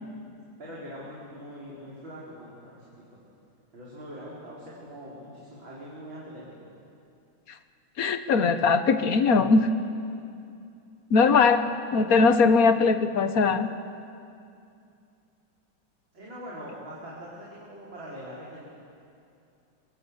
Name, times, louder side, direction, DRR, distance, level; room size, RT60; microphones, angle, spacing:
voice 1, 0.6-3.2 3.7-6.7 16.1-18.7, equal, 90° right, -7 dB, 5.2 m, -42 dB
voice 2, 8.0-9.7 11.1-11.7 11.9-13.7, left 4 dB, 55° left, 10 dB, 1.4 m, -20 dB
25.5 x 23.5 x 8.1 m, 2.5 s
omnidirectional pair, 2.1 m